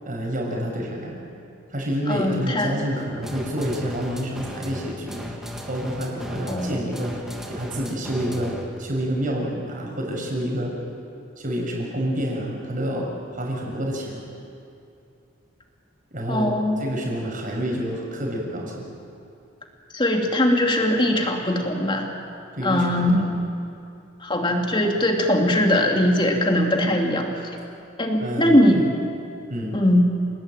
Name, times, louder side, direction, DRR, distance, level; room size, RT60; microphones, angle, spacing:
voice 1, 0.0-1.2 1.7-5.3 5.7-7.2 7.5-10.7 11.4-14.2 16.1-16.5 16.8-18.8 22.5-23.3 28.2-28.8 29.5-29.8, equal, 45° right, -1 dB, 6.7 m, -28 dB
voice 2, 2.1-2.8 6.5-6.8 16.3-16.8 19.9-22.1 22.6-23.2 24.2-27.5 28.0-28.9 29.7-30.1, left 1 dB, 25° left, 2 dB, 2.9 m, -20 dB
sound 1, 3.2-8.8, equal, ahead, 2.9 m, -36 dB
29.0 x 19.5 x 9.1 m, 2.6 s
head